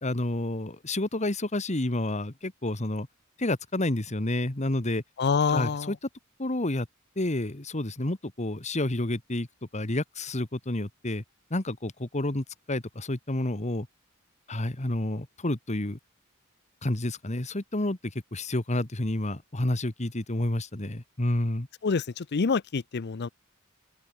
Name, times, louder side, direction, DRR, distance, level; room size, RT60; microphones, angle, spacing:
voice 1, 0.0-3.1 3.4-5.0 5.5-6.0 6.4-6.9 7.2-9.5 9.7-11.2 11.5-13.9 14.5-16.0 16.8-21.7, left 1 dB, 35° left, 1.8 m, -29 dB
voice 2, 5.2-5.9 21.8-23.3, left 5 dB, 55° left, 0.6 m, -26 dB
open air
head